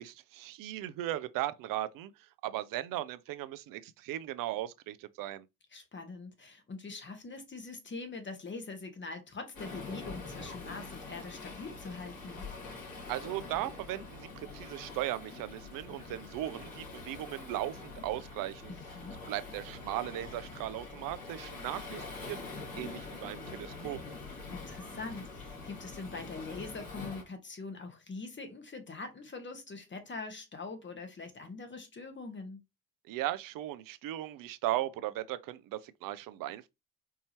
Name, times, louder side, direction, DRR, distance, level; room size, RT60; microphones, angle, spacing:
voice 1, 0.0-5.5 13.1-18.8 19.3-22.4 22.8-24.0 33.1-36.7, right 14 dB, 55° right, 0.5 m, -37 dB
voice 2, 5.7-12.5 18.7-19.2 24.5-32.6, left 3 dB, 25° left, 1.2 m, -43 dB
Waves surf, 9.5-27.2, left 3 dB, 55° left, 2.5 m, -45 dB
4.6 x 2.7 x 2.8 m
hypercardioid pair, 50°, 40 cm